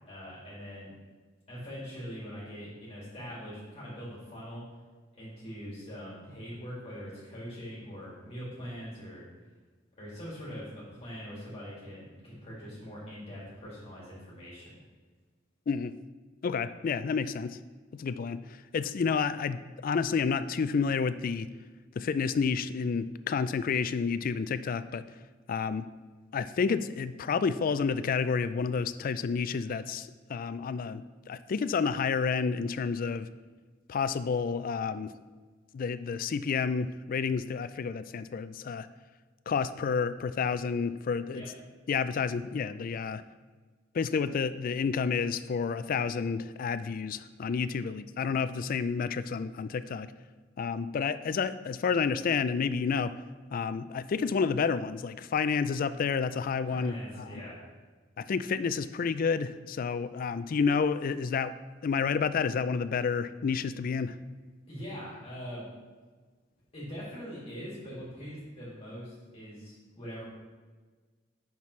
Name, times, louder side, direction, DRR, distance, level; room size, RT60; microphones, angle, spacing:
voice 1, 0.1-0.9 1.5-4.6 5.1-9.3 10.0-14.7 41.3-41.5 47.8-47.9 56.7-57.6 64.7-65.6 66.7-70.2, equal, 35° left, -7 dB, 2.3 m, -42 dB
voice 2, 15.7-16.0 16.4-17.6 17.9-21.5 22.0-25.1 25.5-25.9 26.3-33.3 33.9-35.1 35.7-38.9 39.5-41.4 41.9-43.2 43.9-50.1 50.6-53.1 53.5-57.4 58.2-61.5 61.8-64.2, left 5 dB, 50° left, 14 dB, 0.3 m, -30 dB
9.1 x 5.9 x 3.2 m, 1.4 s
head